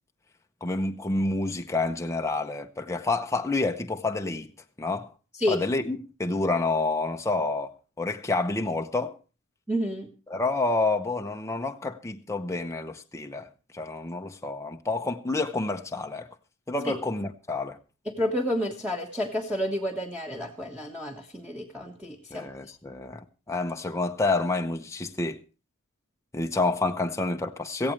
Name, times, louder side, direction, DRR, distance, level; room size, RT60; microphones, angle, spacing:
voice 1, 0.6-4.5 4.8-5.1 5.5-7.7 8.0-9.2 10.3-13.5 13.7-16.3 16.7-17.8 22.3-25.4 26.3-27.9, left 2 dB, 15° left, 0.7 m, -28 dB
voice 2, 9.7-10.1 16.9-17.0 18.1-22.5, equal, 5° right, 1.4 m, -30 dB
17.5 x 15.0 x 3.2 m
head